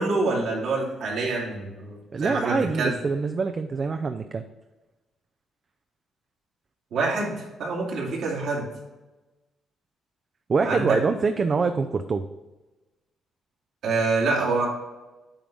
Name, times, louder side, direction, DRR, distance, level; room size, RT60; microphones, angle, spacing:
voice 1, 0.0-2.9 6.9-8.7 10.6-11.0 13.8-14.7, right 3 dB, 75° right, -3 dB, 2.5 m, -26 dB
voice 2, 2.1-4.4 10.5-12.3, right 4 dB, 40° right, 7 dB, 0.4 m, -25 dB
9.0 x 3.4 x 5.1 m, 1.1 s
cardioid pair, 90°, 0 cm